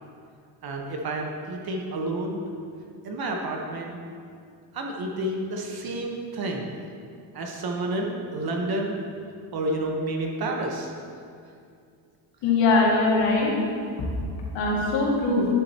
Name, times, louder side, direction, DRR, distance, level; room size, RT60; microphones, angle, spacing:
voice 1, 0.6-2.4 3.0-4.0 4.7-6.7 7.3-9.0 9.5-10.9, right 1 dB, 50° right, 1 dB, 1.2 m, -30 dB
voice 2, 12.4-13.5 14.5-15.5, left 3 dB, 75° left, -3 dB, 2.1 m, -21 dB
10.5 x 7.6 x 2.9 m, 2.4 s
cardioid pair, 100°, 45 cm